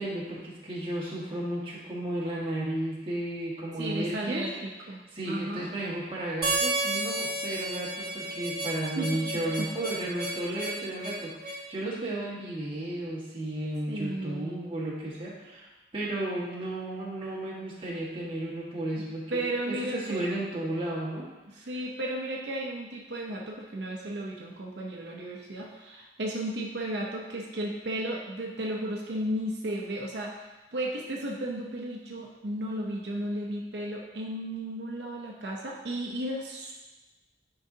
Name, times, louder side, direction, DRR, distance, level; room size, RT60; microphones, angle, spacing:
voice 1, 0.0-4.5 5.1-15.7 15.9-19.4 19.6-21.3 21.5-21.7, right 1 dB, 30° right, -7 dB, 1.6 m, -33 dB
voice 2, 3.8-5.7 9.0-9.2 9.6-9.7 13.9-14.6 19.3-20.2 21.5-36.7, right 1 dB, 80° right, -1 dB, 0.7 m, -34 dB
Harmonica, 6.4-11.6, right 2 dB, 60° right, 1.2 m, -32 dB
10.0 x 3.9 x 2.8 m, 1.1 s
head